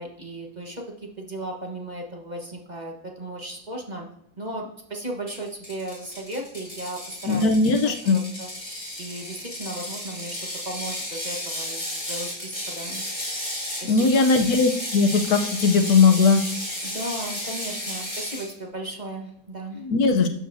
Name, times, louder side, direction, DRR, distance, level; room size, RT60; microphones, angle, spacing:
voice 1, 0.0-4.1 4.4-7.5 7.8-8.5 9.0-13.0 13.3-14.2 16.8-19.8, right 1 dB, 30° right, 0 dB, 1.4 m, -36 dB
Ratchet pawl, 5.3-18.5, left 1 dB, 25° left, 3.9 m, -33 dB
voice 2, 7.3-8.2 13.8-16.4 19.8-20.3, left 4 dB, 75° left, 5 dB, 1.3 m, -19 dB
12.5 x 7.7 x 2.7 m, 0.75 s
omnidirectional pair, 1.6 m